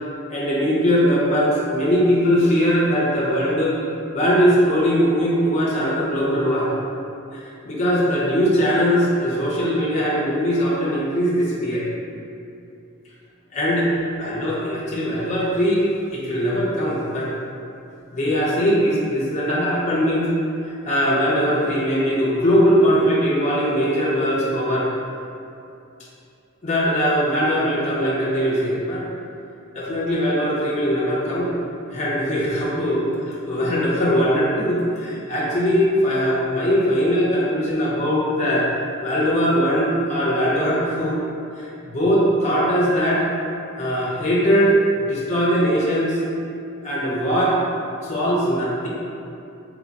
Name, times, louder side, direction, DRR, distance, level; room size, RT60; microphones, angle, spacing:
voice 1, 0.3-3.8 4.1-6.7 7.3-11.8 13.5-13.9 14.2-17.3 18.1-20.3 20.9-24.9 26.6-29.0 29.7-31.5 31.9-33.0 33.3-38.7 39.0-41.2 41.5-43.3 43.8-44.8 45.0-46.2 46.8-47.6 48.0-48.9, equal, 35° left, -5 dB, 0.4 m, -20 dB
3.0 x 2.1 x 2.6 m, 2.6 s
head